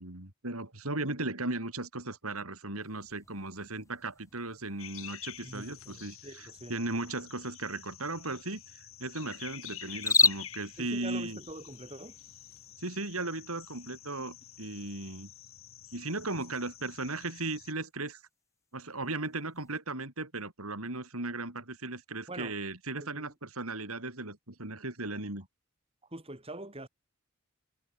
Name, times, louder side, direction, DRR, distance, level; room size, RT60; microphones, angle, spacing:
voice 1, 0.0-11.4 12.8-15.3 15.9-18.2 18.7-25.5, right 2 dB, 85° right, 5.1 m, -37 dB
sound 1, 2.8-19.8, left 4 dB, 15° left, 2.6 m, -38 dB
sound 2, 4.8-17.7, left 11 dB, 70° left, 6.5 m, -49 dB
voice 2, 5.4-6.7 10.8-12.2 14.2-14.3 16.3-16.4 22.3-22.5 23.0-23.3 26.1-26.9, right 1 dB, 25° right, 5.5 m, -44 dB
head